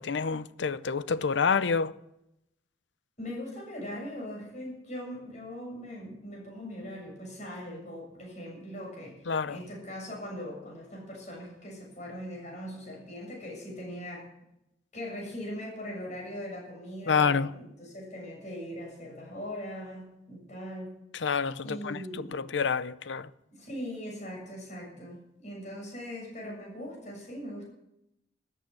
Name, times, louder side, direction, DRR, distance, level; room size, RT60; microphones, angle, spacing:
voice 1, 0.0-1.9 9.3-9.6 17.1-17.5 21.1-23.3, left 5 dB, 80° left, 0.6 m, -28 dB
voice 2, 3.2-14.3 14.9-20.9 21.6-22.4 23.5-27.7, equal, 40° left, 7.2 m, -40 dB
14.0 x 9.1 x 8.5 m
head